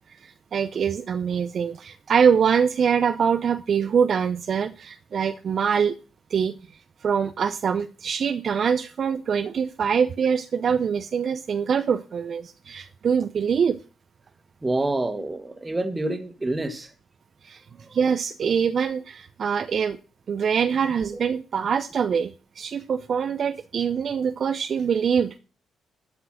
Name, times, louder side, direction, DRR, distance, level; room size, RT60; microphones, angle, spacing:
voice 1, 0.2-5.9 6.3-6.6 7.0-13.8 17.4-17.6 17.9-20.0 20.3-25.4, right 7 dB, 55° right, 9 dB, 0.6 m, -24 dB
voice 2, 14.6-16.9, right 2 dB, 20° right, 9 dB, 1.8 m, -27 dB
11.5 x 5.8 x 6.3 m, 0.35 s
hypercardioid pair, 45°, 0 cm